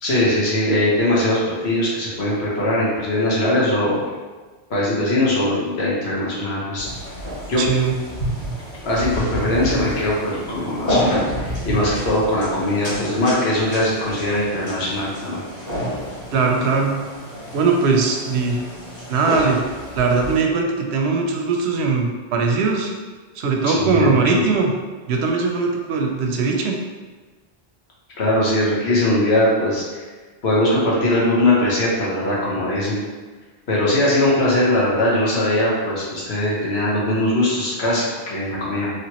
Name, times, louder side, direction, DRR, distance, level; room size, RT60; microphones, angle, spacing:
voice 1, 0.0-4.0 4.7-6.9 7.5-7.6 8.8-15.4 23.6-24.4 28.2-30.0 30.4-33.0 33.7-38.9, left 1 dB, 90° left, -6 dB, 1.3 m, -20 dB
sound 1, 6.8-20.4, equal, 40° left, 1.7 m, -29 dB
voice 2, 7.6-7.9 16.3-16.9 17.5-18.6 19.1-19.6 19.9-22.9 23.4-24.7 25.1-26.7, right 4 dB, 90° right, 1 dB, 0.8 m, -20 dB
3.2 x 2.9 x 2.9 m, 1.3 s
omnidirectional pair, 1.0 m